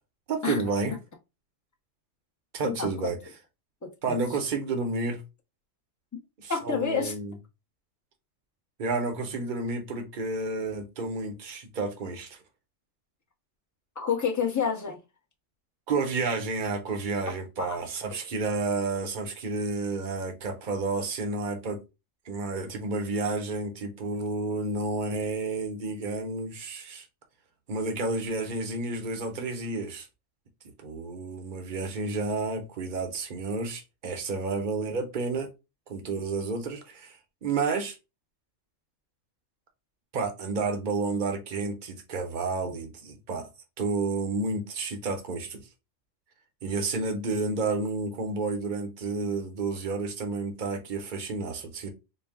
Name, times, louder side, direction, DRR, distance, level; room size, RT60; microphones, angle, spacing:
voice 1, 0.3-0.9 2.5-3.2 4.0-5.2 6.4-7.3 8.8-12.4 15.9-21.8 22.3-27.0 27.7-30.1 30.8-35.5 35.9-37.2 37.4-38.0 40.1-43.5 43.8-45.6 46.6-51.9, right 3 dB, 45° right, 0.9 m, -30 dB
voice 2, 2.6-3.1 3.8-4.2 6.5-7.2 14.0-15.0 17.6-17.8, left 6 dB, 20° left, 0.7 m, -29 dB
4.2 x 2.2 x 3.5 m
omnidirectional pair, 1.3 m